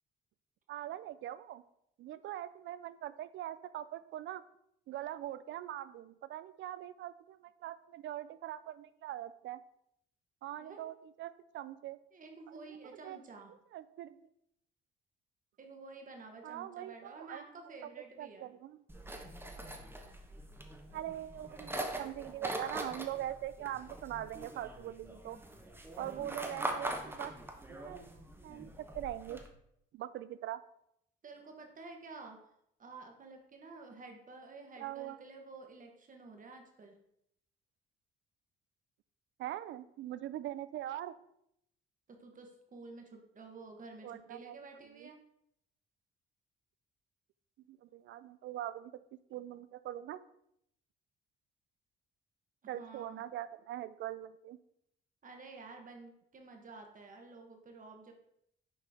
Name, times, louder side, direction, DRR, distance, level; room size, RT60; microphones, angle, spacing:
voice 1, 0.7-1.6 2.0-4.4 4.9-9.6 10.4-12.0 12.5-12.7 13.0-13.2 13.7-14.2 16.4-17.5 18.2-18.8 20.9-25.4 26.0-27.3 27.7-28.1 28.4-28.7 28.9-29.4 29.9-30.6 34.8-35.2 39.4-41.2 44.0-44.6 45.0-45.1 47.7-48.9 49.3-50.2 52.7-54.6, right 13 dB, 70° right, 15 dB, 0.4 m, -42 dB
voice 2, 12.1-13.5 15.6-18.5 26.1-26.3 31.2-32.4 32.8-37.0 42.1-45.2 52.7-53.2 55.2-58.1, right 3 dB, 40° right, 3 dB, 1.2 m, -51 dB
sound 1, 18.9-29.5, right 1 dB, 10° right, 0.9 m, -43 dB
6.5 x 4.4 x 3.5 m, 0.75 s
cardioid pair, 90°, 20 cm